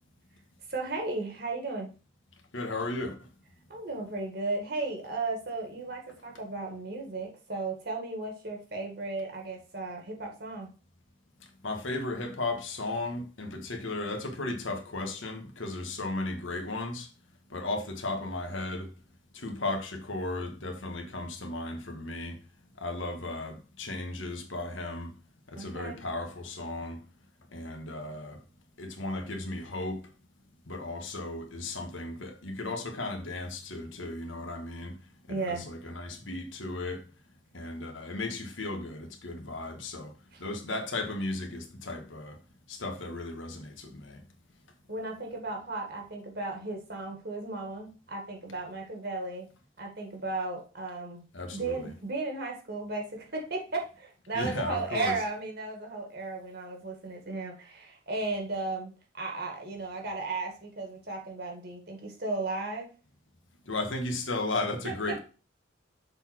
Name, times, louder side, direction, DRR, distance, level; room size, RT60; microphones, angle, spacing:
voice 1, 0.7-1.9 3.7-10.7 25.5-26.0 35.3-35.6 40.3-40.4 44.9-49.5 49.8-51.2 51.5-62.9 64.8-65.2, right 3 dB, 55° right, 2.0 m, -35 dB
voice 2, 2.5-3.3 11.6-17.1 17.5-18.9 19.3-22.4 22.8-25.1 25.5-27.0 27.5-28.4 28.8-30.0 30.7-35.0 35.3-37.0 37.5-40.1 40.4-42.4 42.7-44.2 51.3-51.8 54.3-55.2 63.6-65.2, left 2 dB, 80° left, 1.4 m, -35 dB
6.8 x 4.1 x 4.3 m
head